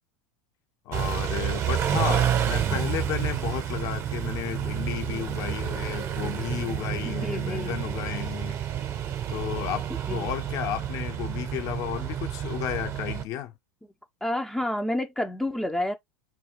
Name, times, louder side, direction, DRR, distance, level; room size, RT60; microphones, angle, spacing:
voice 1, 0.9-8.6 9.3-13.5, left 12 dB, 50° left, 0.6 m, -33 dB
Car / Idling / Accelerating revving vroom, 0.9-13.2, right 10 dB, 40° right, 0.7 m, -29 dB
voice 2, 7.2-7.8 10.1-10.3 14.2-15.9, left 1 dB, 5° left, 0.4 m, -29 dB
2.3 x 2.2 x 2.9 m
hypercardioid pair, 90°, 8 cm